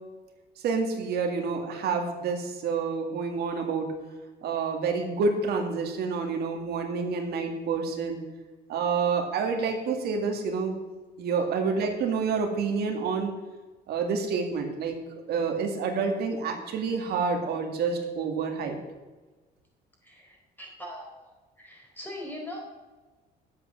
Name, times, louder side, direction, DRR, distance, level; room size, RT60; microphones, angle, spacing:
voice 1, 0.6-3.9 4.4-8.2 8.7-10.7 11.2-13.3 13.9-15.0 15.3-18.8, right 5 dB, 70° right, 3 dB, 2.1 m, -28 dB
voice 2, 20.0-21.3 21.6-22.6, left 1 dB, 10° left, -1 dB, 4.3 m, -41 dB
10.0 x 8.0 x 7.2 m, 1.2 s
cardioid pair, 110°, 17 cm